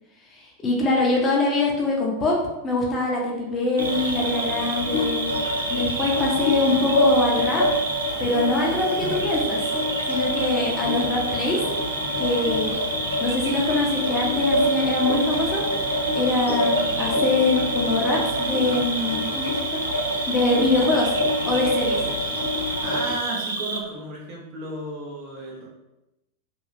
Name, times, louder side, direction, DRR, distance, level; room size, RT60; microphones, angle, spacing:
voice 1, 0.3-2.4 2.6-5.2 5.7-7.6 8.2-9.6 10.1-11.6 12.2-12.8 13.2-19.8 20.3-21.1 21.4-22.0, left 2 dB, 25° left, -2 dB, 0.7 m, -24 dB
sound 1, 3.8-23.2, left 1 dB, 75° left, 0.8 m, -27 dB
Cricket, 3.8-23.8, right 3 dB, 70° right, 0.4 m, -30 dB
voice 2, 16.5-17.1 22.8-25.7, right 1 dB, 45° right, -2 dB, 0.7 m, -34 dB
2.7 x 2.7 x 2.4 m, 0.96 s
figure-of-eight pair, 90°, 0 cm